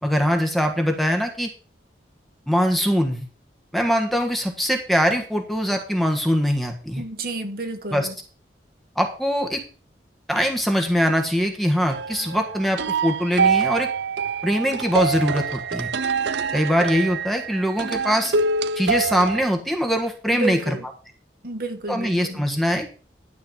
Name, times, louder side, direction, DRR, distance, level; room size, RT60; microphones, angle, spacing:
voice 1, 0.0-1.5 2.5-3.2 3.7-7.0 7.9-8.1 9.0-9.6 10.3-13.9 14.4-15.9 16.5-18.3 18.8-20.7 21.9-22.9, equal, ahead, 3 dB, 1.5 m, -22 dB
voice 2, 7.0-8.1 20.3-20.9 21.4-22.5, right 2 dB, 55° right, 5 dB, 1.7 m, -30 dB
sound 1, 11.9-19.5, right 5 dB, 75° right, 0.6 m, -25 dB
12.0 x 4.7 x 7.2 m, 0.37 s
head